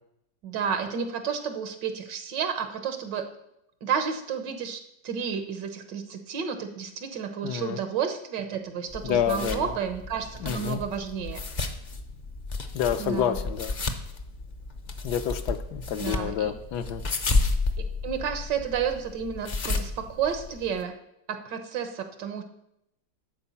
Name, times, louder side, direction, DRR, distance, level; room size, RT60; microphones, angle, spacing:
voice 1, 0.4-3.3 3.8-11.4 13.0-13.4 15.9-16.5 17.8-21.0 21.3-22.4, right 7 dB, 80° right, 7 dB, 1.7 m, -31 dB
voice 2, 7.4-7.8 9.0-9.7 10.4-10.8 12.7-13.7 15.0-17.0, left 9 dB, 75° left, 8 dB, 1.3 m, -28 dB
sound 1, 8.9-20.8, left 3 dB, 40° left, 0.6 m, -32 dB
11.5 x 4.7 x 7.1 m, 0.79 s
omnidirectional pair, 1.9 m